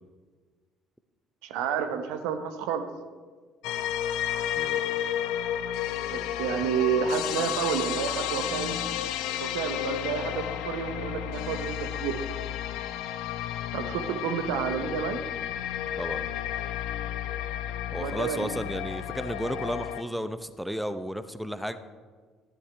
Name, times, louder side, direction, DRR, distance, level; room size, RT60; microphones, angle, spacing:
voice 1, 1.4-2.9 6.1-8.8 9.3-12.2 13.7-15.2 18.0-18.5, right 7 dB, 65° right, 8 dB, 0.8 m, -30 dB
sound 1, 3.6-20.0, left 11 dB, 65° left, 0.5 m, -32 dB
voice 2, 4.6-4.9 16.0-16.3 17.9-21.8, equal, ahead, 11 dB, 0.7 m, -33 dB
14.0 x 11.0 x 3.4 m, 1.5 s
figure-of-eight pair, 50°, 0 cm